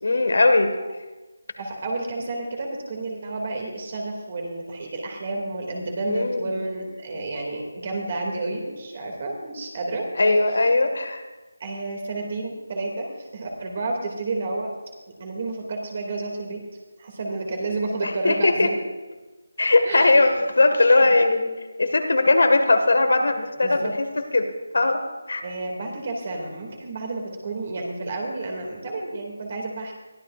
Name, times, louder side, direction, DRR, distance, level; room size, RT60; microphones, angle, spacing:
voice 1, 0.0-0.7 6.1-6.5 7.1-7.2 10.2-11.2 18.0-18.7 19.6-24.1 24.3-25.0 25.3-25.4, left 2 dB, 65° left, 6 dB, 1.7 m, -19 dB
voice 2, 1.6-10.3 11.6-14.7 15.2-16.6 17.0-18.8 19.8-20.2 21.0-21.1 23.6-23.9 25.4-29.9, right 2 dB, 35° right, 1 dB, 2.4 m, -30 dB
22.0 x 14.0 x 2.5 m, 1.2 s
figure-of-eight pair, 170°, 0 cm